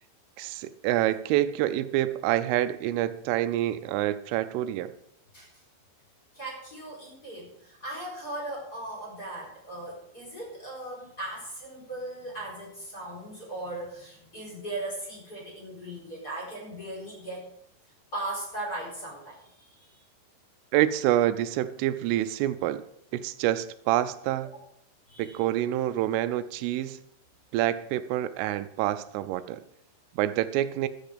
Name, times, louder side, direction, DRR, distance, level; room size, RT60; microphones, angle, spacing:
voice 1, 0.4-4.9 20.7-22.8 23.1-24.5 25.2-27.0 27.5-29.6 30.2-30.9, right 13 dB, 85° right, 12 dB, 3.1 m, -27 dB
voice 2, 6.3-17.4 18.1-20.0 25.1-25.4, right 1 dB, 20° left, -1 dB, 4.2 m, -38 dB
13.0 x 8.9 x 5.1 m, 0.76 s
omnidirectional pair, 5.6 m